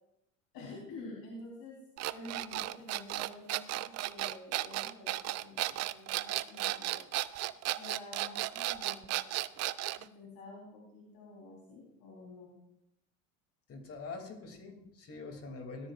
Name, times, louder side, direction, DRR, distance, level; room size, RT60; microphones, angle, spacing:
voice 1, 0.5-1.8 2.1-7.1 7.7-9.2 10.0-12.5, left 2 dB, 60° left, -3 dB, 3.9 m, -49 dB
sound 1, 2.0-10.0, right 16 dB, 40° right, 0.5 m, -34 dB
voice 2, 13.7-15.9, left 3 dB, 35° left, 4 dB, 2.8 m, -44 dB
18.0 x 13.0 x 2.5 m, 0.83 s
hypercardioid pair, 90°, 42 cm